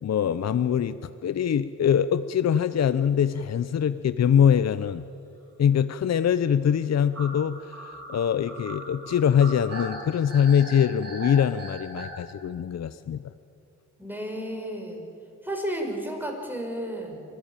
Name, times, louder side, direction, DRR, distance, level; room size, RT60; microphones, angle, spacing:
voice 1, 0.0-5.0 5.6-13.2, left 8 dB, 55° left, 13 dB, 0.7 m, -23 dB
sound 1, 3.1-3.2 3.4-3.5 3.8-3.9 4.8-5.1 7.1-12.0, right 1 dB, 55° right, 7.1 m, -39 dB
voice 2, 14.0-15.0 15.4-17.2, right 1 dB, 5° right, 2 dB, 5.7 m, -32 dB
25.5 x 16.0 x 9.0 m, 2.7 s
cardioid pair, 65°, 31 cm